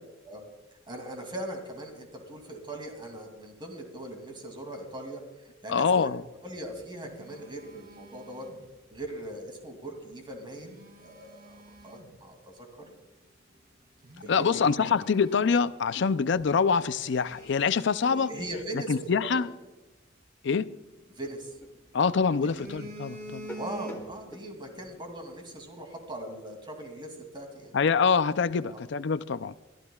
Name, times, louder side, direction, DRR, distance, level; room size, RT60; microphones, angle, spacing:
voice 1, 0.9-5.2 5.6-6.1 6.4-8.5 8.9-12.7 14.2-15.0 18.1-19.4 21.1-21.5 22.4-22.6 23.6-27.7 28.6-28.8, right 1 dB, 25° right, 2.6 m, -40 dB
voice 2, 5.7-6.2 14.3-18.3 18.9-19.5 20.4-20.7 21.9-23.5 27.7-29.5, left 5 dB, 65° left, 0.5 m, -25 dB
Telephone, 6.5-9.1 10.3-12.2 12.8-13.0 13.5-13.6 14.0-16.0 16.3-16.4 16.9-19.3 20.9-21.8 22.2-24.4 24.7-24.9, right 1 dB, 50° right, 2.7 m, -47 dB
sound 1, 21.2-24.5, equal, 15° left, 1.2 m, -47 dB
24.0 x 13.0 x 2.4 m
head